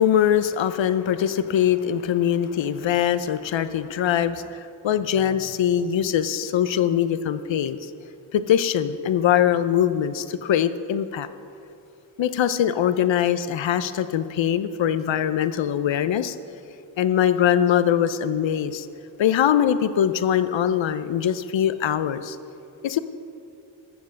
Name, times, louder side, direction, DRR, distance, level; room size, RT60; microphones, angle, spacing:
voice 1, 0.0-7.9 8.3-11.3 12.2-16.4 17.0-18.9 19.2-22.4 22.8-23.0, left 9 dB, 75° left, 12 dB, 0.7 m, -22 dB
14.0 x 7.5 x 6.4 m, 2.6 s
supercardioid pair, 40°, 46 cm